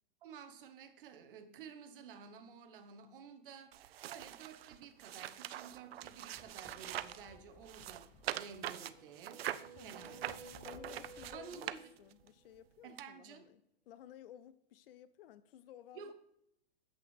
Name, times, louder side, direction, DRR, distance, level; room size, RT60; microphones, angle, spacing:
voice 1, 0.2-3.8 4.1-9.5 9.8-10.6 11.3-11.8 12.8-13.5 15.9-16.1, right 6 dB, 60° right, 1.1 m, -52 dB
sound 1, 3.7-7.3 7.6-12.3 13.0-13.1, right 12 dB, 75° right, 0.5 m, -44 dB
sound 2, 5.7-11.8, left 3 dB, 10° left, 0.4 m, -62 dB
sound 3, 6.1-7.7 8.6-12.5, right 1 dB, 5° right, 1.5 m, -57 dB
voice 2, 9.8-10.3 10.6-16.1, left 11 dB, 70° left, 0.5 m, -56 dB
8.1 x 5.8 x 3.4 m
hypercardioid pair, 140°, 30 cm